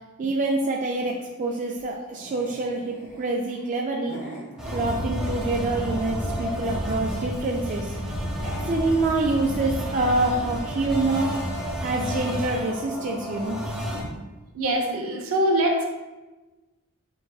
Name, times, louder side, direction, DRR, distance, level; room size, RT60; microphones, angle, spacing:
voice 1, 0.2-4.2 4.7-7.9 8.7-11.3 11.8-13.6 14.1-14.2, right 2 dB, 35° right, 0 dB, 0.3 m, -26 dB
sound 1, 0.9-5.5 5.8-6.7 7.2-7.8 8.1-8.2 8.3-10.0, equal, 50° left, 1.3 m, -43 dB
sound 2, 4.6-14.0, equal, 5° right, 0.9 m, -31 dB
voice 2, 14.5-15.9, right 1 dB, 70° right, 1 dB, 0.7 m, -23 dB
6.5 x 2.7 x 2.3 m, 1.2 s
head